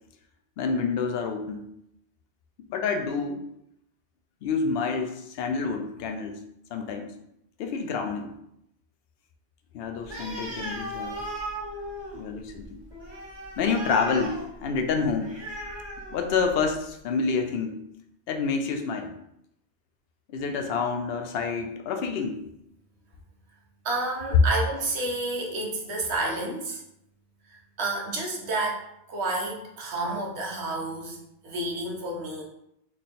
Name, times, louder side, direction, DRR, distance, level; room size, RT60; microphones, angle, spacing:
voice 1, 0.6-1.7 2.7-3.4 4.4-6.4 6.7-7.1 7.6-8.3 9.7-11.2 12.1-12.8 13.6-15.4 16.1-17.8 18.3-19.1 20.3-22.4, left 5 dB, 65° left, 5 dB, 0.7 m, -28 dB
Animal, 10.0-16.8, right 1 dB, 25° right, 0.9 m, -37 dB
voice 2, 23.8-26.8 27.8-28.8 29.1-31.2 31.4-32.4, right 2 dB, 75° right, -1 dB, 1.1 m, -30 dB
3.2 x 2.2 x 4.2 m, 0.79 s
omnidirectional pair, 1.1 m